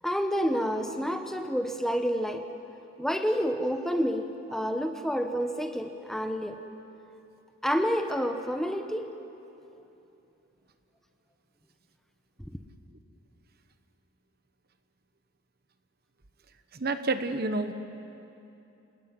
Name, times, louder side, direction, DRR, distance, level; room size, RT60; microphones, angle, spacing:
voice 1, 0.0-2.5 3.0-6.6 7.6-9.1, equal, ahead, 5 dB, 0.9 m, -29 dB
voice 2, 16.8-17.7, right 3 dB, 45° right, 9 dB, 1.1 m, -28 dB
27.5 x 19.0 x 9.6 m, 2.9 s
head